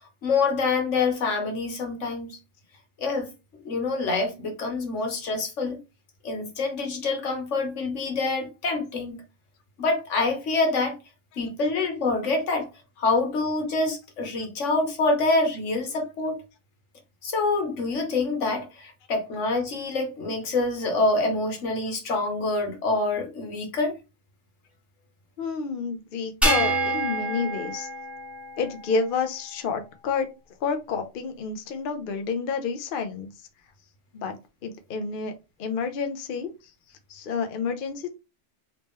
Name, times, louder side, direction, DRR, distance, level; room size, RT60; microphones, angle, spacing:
voice 1, 0.2-2.4 3.0-3.3 3.6-5.8 6.2-9.2 9.8-11.0 11.4-12.7 13.0-16.4 17.2-23.9, left 3 dB, 85° left, 1.4 m, -26 dB
voice 2, 25.4-27.9 28.6-30.3 30.6-33.3 34.1-34.4 34.6-35.3 35.6-36.5 37.1-38.1, left 5 dB, 55° left, 0.7 m, -29 dB
sound 1, 26.4-29.0, right 1 dB, ahead, 0.7 m, -27 dB
3.0 x 2.9 x 3.5 m
omnidirectional pair, 1.2 m